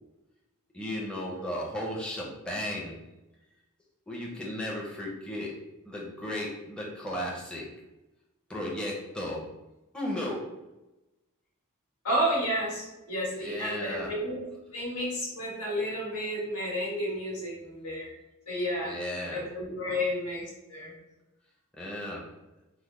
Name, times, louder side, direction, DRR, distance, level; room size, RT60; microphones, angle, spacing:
voice 1, 0.7-2.9 4.1-5.6 5.9-7.7 8.5-9.4 9.9-10.5 13.4-14.1 18.8-19.4 19.8-20.0 21.7-22.2, left 1 dB, 5° left, -4 dB, 0.5 m, -35 dB
voice 2, 12.0-14.4 14.7-18.1 18.5-18.9 19.3-20.9, equal, 85° left, -4 dB, 1.3 m, -31 dB
3.2 x 2.1 x 3.6 m, 1.0 s
head